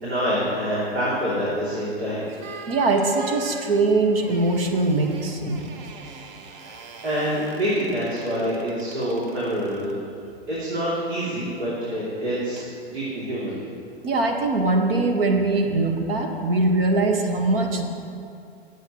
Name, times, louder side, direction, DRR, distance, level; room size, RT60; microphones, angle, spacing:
voice 1, 0.0-2.3 6.4-6.8 7.0-10.0 10.5-13.6, equal, 80° right, -9 dB, 3.1 m, -26 dB
sound 1, 2.4-10.0 12.6-12.8, right 4 dB, 35° right, 0.8 m, -41 dB
voice 2, 2.7-5.7 14.0-17.9, right 2 dB, 65° right, 3 dB, 1.7 m, -22 dB
19.0 x 8.1 x 3.1 m, 2.5 s
hypercardioid pair, 110°, 32 cm